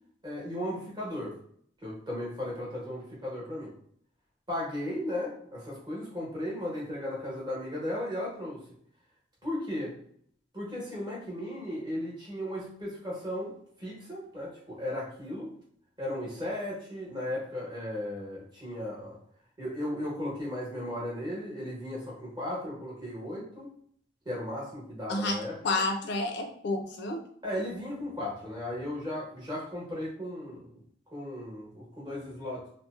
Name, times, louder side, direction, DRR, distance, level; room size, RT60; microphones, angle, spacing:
voice 1, 0.2-1.3 1.8-3.7 4.5-8.6 9.4-9.9 10.5-13.5 13.8-15.5 16.0-19.2 19.6-23.7 24.2-25.5 27.4-30.7 31.1-32.7, left 1 dB, 20° right, -6 dB, 1.0 m, -36 dB
voice 2, 25.1-27.2, left 2 dB, 60° left, 4 dB, 0.4 m, -30 dB
2.7 x 2.0 x 2.4 m, 0.62 s
head